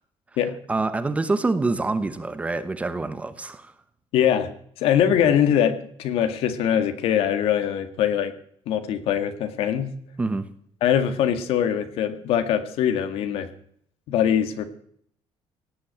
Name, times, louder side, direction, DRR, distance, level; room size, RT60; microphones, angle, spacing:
voice 1, 0.7-3.7 10.2-10.5, right 3 dB, 15° right, 11 dB, 0.8 m, -26 dB
voice 2, 4.1-4.5 4.8-8.3 8.7-9.9 10.8-13.5 14.1-14.6, left 9 dB, 65° left, 9 dB, 1.8 m, -22 dB
17.5 x 8.4 x 8.9 m, 0.66 s
cardioid pair, 175°, 10 cm